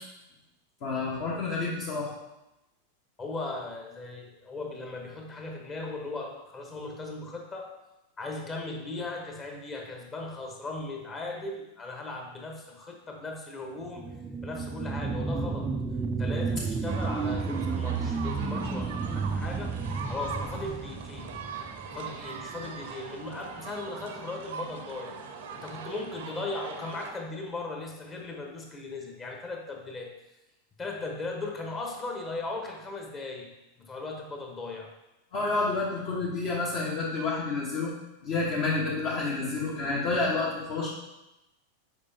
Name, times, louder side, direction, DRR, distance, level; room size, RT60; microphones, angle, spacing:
voice 1, 0.8-2.1 35.3-37.9 38.2-40.9, left 3 dB, 45° left, -5 dB, 1.2 m, -29 dB
voice 2, 3.2-7.7 8.2-14.2 14.4-15.7 16.1-19.8 20.1-21.4 21.9-25.2 25.5-30.1 30.8-34.9, left 2 dB, 25° left, 1 dB, 1.2 m, -38 dB
sound 1, 13.8-22.9 23.3-23.4, right 4 dB, 15° right, 0.4 m, -32 dB
sound 2, 16.9-27.1, right 5 dB, 55° right, 0.6 m, -41 dB
6.7 x 5.1 x 2.8 m, 0.95 s
figure-of-eight pair, 90°, 0 cm